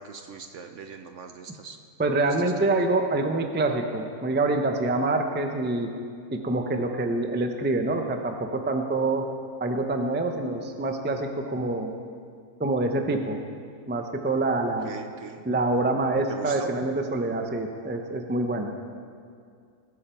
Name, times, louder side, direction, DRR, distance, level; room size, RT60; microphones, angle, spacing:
voice 1, 0.0-1.8 2.3-2.7 14.7-15.4 16.3-16.7, right 6 dB, 60° right, 7 dB, 0.9 m, -41 dB
voice 2, 2.0-5.9 6.3-9.2 9.6-11.9 12.6-13.4 13.9-14.9 15.4-18.9, right 2 dB, 15° right, 4 dB, 0.4 m, -26 dB
21.0 x 8.7 x 4.6 m, 2.3 s
omnidirectional pair, 1.7 m